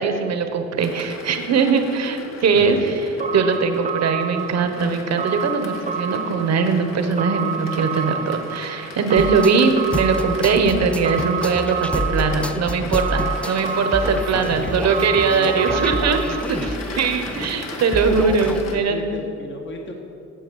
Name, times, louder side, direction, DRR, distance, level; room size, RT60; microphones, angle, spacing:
voice 1, 0.0-3.1 3.3-16.2 16.5-19.2, right 5 dB, 60° right, 7 dB, 1.1 m, -21 dB
sound 1, 0.8-18.8, left 4 dB, 60° left, 1.3 m, -38 dB
voice 2, 2.5-2.9 14.5-14.8 15.3-16.2 18.6-19.9, left 2 dB, 40° left, 1 dB, 1.3 m, -36 dB
sound 2, 3.2-16.5, right 7 dB, 25° right, 0.8 m, -29 dB
sound 3, 9.2-18.6, left 1 dB, 5° left, 0.3 m, -29 dB
9.0 x 7.3 x 7.1 m, 2.8 s
cardioid pair, 90°, 30 cm